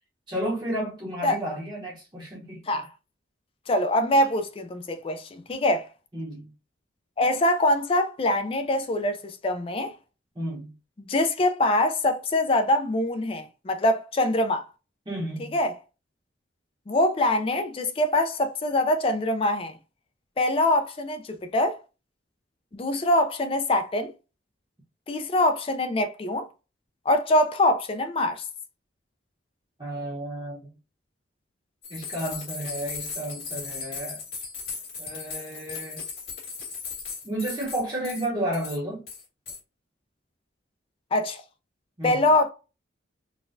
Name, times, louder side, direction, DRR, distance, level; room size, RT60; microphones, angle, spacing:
voice 1, 0.3-2.6 6.1-6.5 10.4-10.7 15.1-15.6 29.8-30.7 31.9-34.2 35.0-36.0 37.2-39.0 42.0-42.3, right 1 dB, 25° right, 0.8 m, -32 dB
voice 2, 3.7-5.9 7.2-9.9 11.0-14.6 15.5-15.7 16.9-19.7 20.4-21.8 22.7-24.1 25.1-26.5 27.1-28.4 41.1-41.4 42.0-42.5, left 1 dB, 30° left, 0.3 m, -24 dB
sound 1, 31.8-38.3 38.5-38.8 39.1-39.6, left 5 dB, 55° left, 1.7 m, -37 dB
3.9 x 2.2 x 2.5 m
head